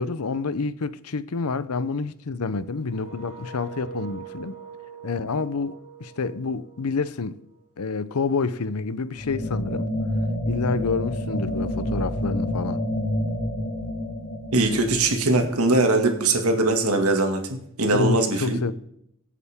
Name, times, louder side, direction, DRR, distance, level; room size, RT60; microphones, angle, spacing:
voice 1, 0.0-4.5 5.0-7.4 7.8-9.9 10.5-12.8 17.9-18.7, left 4 dB, 90° left, 0.7 m, -28 dB
sound 1, 2.8-7.7, right 5 dB, 65° left, 2.1 m, -43 dB
sound 2, 9.2-15.9, left 1 dB, 45° left, 3.6 m, -28 dB
voice 2, 14.5-18.6, right 2 dB, 85° right, 2.2 m, -21 dB
23.0 x 8.5 x 3.6 m
head